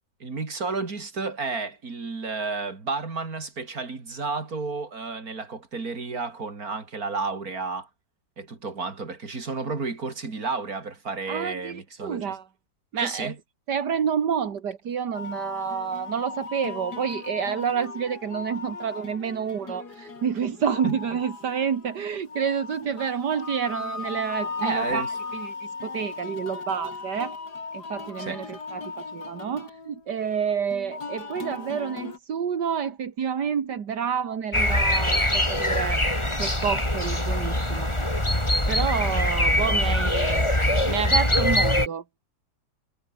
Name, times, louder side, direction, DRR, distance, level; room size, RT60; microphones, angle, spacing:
voice 1, 0.2-7.9 8.4-12.4 13.0-13.3 20.8-21.0 24.6-25.1 28.2-28.4, right 4 dB, 60° right, 3.8 m, -32 dB
voice 2, 11.3-12.5 12.9-13.3 13.7-27.4 27.7-36.1 36.4-37.9 38.7-40.5 40.8-42.0, right 7 dB, 80° right, 2.3 m, -29 dB
sound 1, 15.1-32.2, left 4 dB, 70° left, 3.7 m, -37 dB
sound 2, 34.5-41.9, left 1 dB, 15° left, 5.0 m, -23 dB
omnidirectional pair, 1.8 m